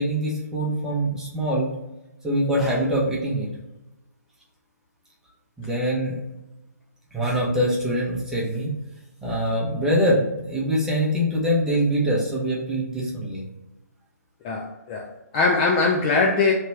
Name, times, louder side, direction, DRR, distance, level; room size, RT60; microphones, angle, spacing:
voice 1, 0.0-1.7 2.2-3.5 5.6-6.1 7.1-8.7 9.2-13.4, equal, 5° right, -5 dB, 0.9 m, -24 dB
voice 2, 14.4-16.5, left 4 dB, 25° left, -1 dB, 0.4 m, -21 dB
3.3 x 2.9 x 4.5 m, 0.98 s
figure-of-eight pair, 135°, 9 cm